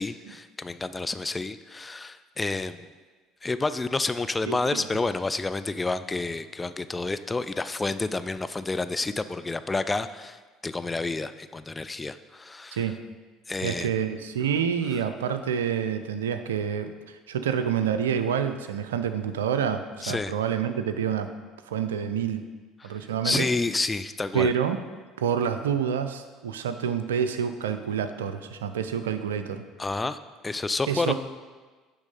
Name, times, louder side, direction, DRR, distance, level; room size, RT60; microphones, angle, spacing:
voice 1, 0.0-2.9 3.4-12.8 13.5-13.9 20.0-20.3 22.8-22.9 23.2-24.5 29.8-30.2 30.4-31.1, left 3 dB, 20° left, 12 dB, 0.4 m, -29 dB
voice 2, 4.4-5.0 12.7-12.9 13.6-21.3 21.7-22.4 22.8-23.5 24.3-24.8 25.2-29.6 30.8-31.1, right 8 dB, 85° right, 10 dB, 0.4 m, -28 dB
9.7 x 3.5 x 5.3 m, 1.4 s
hypercardioid pair, 65°, 0 cm